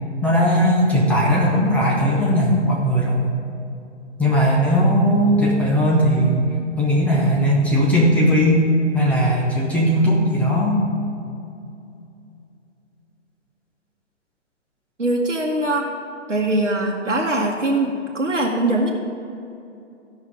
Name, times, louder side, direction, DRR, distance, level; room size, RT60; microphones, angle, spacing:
voice 1, 0.2-3.2 4.2-6.4 6.8-8.7 8.9-10.8, equal, 5° left, -5 dB, 0.6 m, -18 dB
voice 2, 15.0-15.9 16.3-18.9, right 2 dB, 85° right, -1 dB, 1.2 m, -21 dB
15.0 x 5.6 x 4.9 m, 2.6 s
figure-of-eight pair, 125°, 36 cm